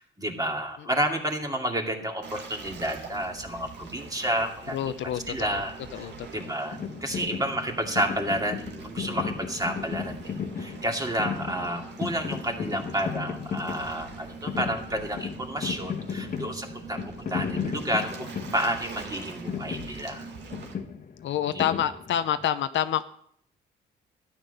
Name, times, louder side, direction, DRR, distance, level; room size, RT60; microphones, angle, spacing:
voice 1, 0.0-4.8 5.3-6.1 6.3-20.3 21.5-21.7, right 1 dB, 20° right, 2 dB, 2.5 m, -30 dB
Waves surf, 2.2-20.7, right 5 dB, 60° right, 2.2 m, -43 dB
voice 2, 4.7-5.6 5.9-6.5 7.1-7.2 21.2-23.0, left 10 dB, 70° left, 11 dB, 0.7 m, -28 dB
sound 1, 6.7-22.5, left 6 dB, 45° left, 1.2 m, -35 dB
12.5 x 10.0 x 5.5 m, 0.66 s
cardioid pair, 90°, 20 cm